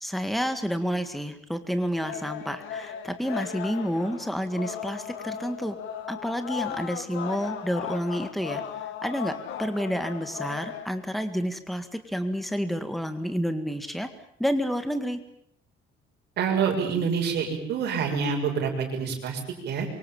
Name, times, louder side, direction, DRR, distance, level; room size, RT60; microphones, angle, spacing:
voice 1, 0.0-5.8 6.1-14.1 14.4-15.2, equal, ahead, 8 dB, 1.9 m, -29 dB
sound 1, 2.0-10.9, left 8 dB, 75° left, 2.8 m, -37 dB
voice 2, 16.4-19.9, right 6 dB, 55° right, 3 dB, 6.7 m, -27 dB
26.5 x 24.5 x 7.3 m, 0.68 s
cardioid pair, 175°, 20 cm